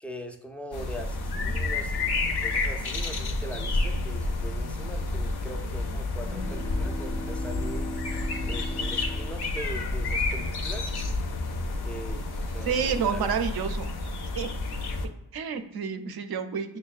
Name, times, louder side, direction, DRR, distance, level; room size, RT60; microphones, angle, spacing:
voice 1, 0.0-7.9 8.5-11.0 11.8-13.3, equal, 5° left, 4 dB, 0.3 m, -41 dB
sound 1, 0.7-15.1, left 2 dB, 60° left, 0.5 m, -30 dB
sound 2, 6.2-10.2, equal, 85° left, 0.9 m, -39 dB
voice 2, 12.6-13.9 14.4-14.5 15.3-16.8, right 6 dB, 60° right, 8 dB, 0.5 m, -29 dB
6.3 x 2.1 x 2.3 m, 0.84 s
wide cardioid pair, 105°, 43 cm